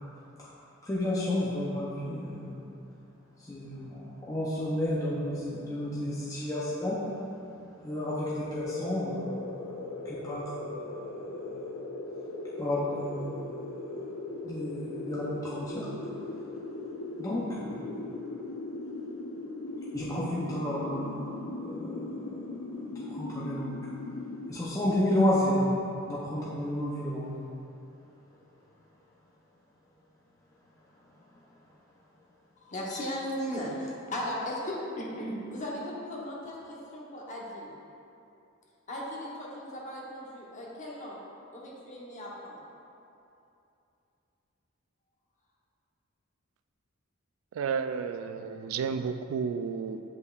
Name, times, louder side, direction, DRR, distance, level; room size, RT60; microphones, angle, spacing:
voice 1, 0.8-2.6 3.4-7.0 7.8-11.7 12.6-14.0 14.4-15.9 16.3-16.4 17.2-18.1 19.9-22.3 22.9-23.8 24.5-25.7 26.0-27.4 32.9-33.1, left 1 dB, 15° left, -8 dB, 0.6 m, -32 dB
sound 1, 8.6-24.5, left 2 dB, 85° left, 0.4 m, -39 dB
voice 2, 32.6-37.7 38.9-41.2 41.5-42.6, equal, 35° left, -4 dB, 1.0 m, -37 dB
voice 3, 47.5-50.0, right 6 dB, 75° right, 12 dB, 0.3 m, -32 dB
8.1 x 5.5 x 2.4 m, 2.7 s
head